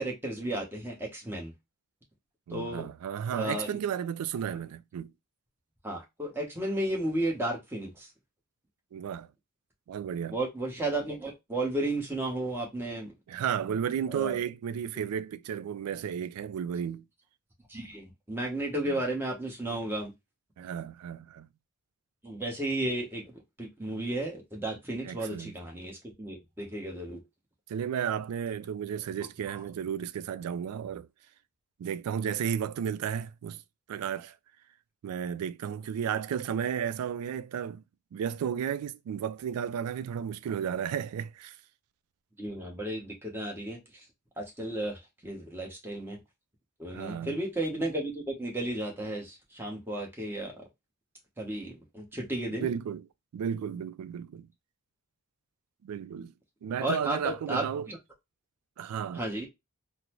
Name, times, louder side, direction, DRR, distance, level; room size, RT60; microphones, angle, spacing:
voice 1, 0.0-1.5 2.5-2.9 3.3-3.7 5.8-8.1 10.3-13.1 14.1-14.4 17.7-20.1 22.2-23.3 23.6-27.2 29.5-29.6 42.4-44.0 44.4-46.2 46.8-50.5 51.4-52.7 56.8-58.0 59.1-59.5, right 1 dB, 10° right, 0.9 m, -33 dB
voice 2, 2.5-5.1 8.9-9.3 9.9-10.4 13.3-17.0 18.9-19.0 20.6-21.5 25.0-25.6 27.7-31.1 31.8-33.6 33.9-34.4 35.0-37.8 38.1-41.6 46.9-47.4 52.6-53.0 53.3-54.5 55.8-56.3 56.6-57.9 58.8-59.2, right 8 dB, 80° right, 0.3 m, -33 dB
3.8 x 2.0 x 2.9 m
head